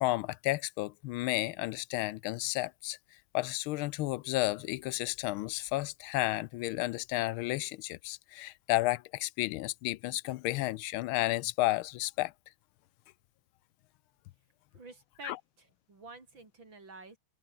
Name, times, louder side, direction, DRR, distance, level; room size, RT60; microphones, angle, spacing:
voice 1, 0.0-3.0 3.3-12.3 15.2-15.4, left 18 dB, 90° left, 1.4 m, -32 dB
voice 2, 14.7-17.2, right 3 dB, 65° right, 5.6 m, -50 dB
omnidirectional pair, 2.2 m